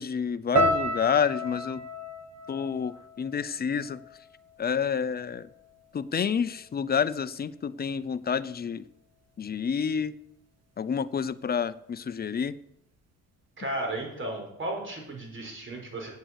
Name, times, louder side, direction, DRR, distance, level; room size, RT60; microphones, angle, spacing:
voice 1, 0.0-1.9 2.5-4.0 4.6-5.5 5.9-8.9 9.4-10.2 10.8-12.6, left 7 dB, 30° left, 16 dB, 0.6 m, -29 dB
sound 1, 0.6-4.8 5.0-5.8 6.4-6.6, equal, 60° right, 1.9 m, -32 dB
voice 2, 13.6-16.1, right 1 dB, 40° right, 1 dB, 5.0 m, -34 dB
9.3 x 8.2 x 8.0 m, 0.78 s
cardioid pair, 90°, 30 cm